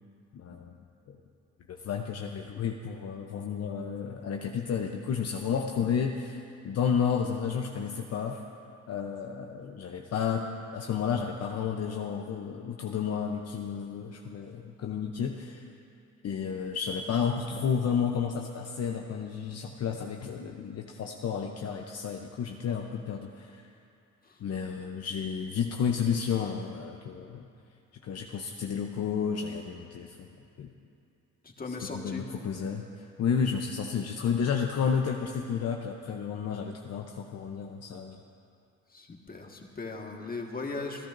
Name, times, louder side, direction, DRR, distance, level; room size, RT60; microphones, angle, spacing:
voice 1, 0.3-0.8 1.1-1.2 1.7-8.4 8.9-15.6 16.2-23.7 24.4-27.5 28.0-30.3 30.6-30.7 31.7-38.2, left 7 dB, 55° left, 2 dB, 0.8 m, -31 dB
voice 2, 31.4-32.3 38.9-41.1, left 3 dB, 30° left, 1 dB, 1.6 m, -38 dB
27.5 x 12.0 x 2.6 m, 2.6 s
cardioid pair, 90°, 30 cm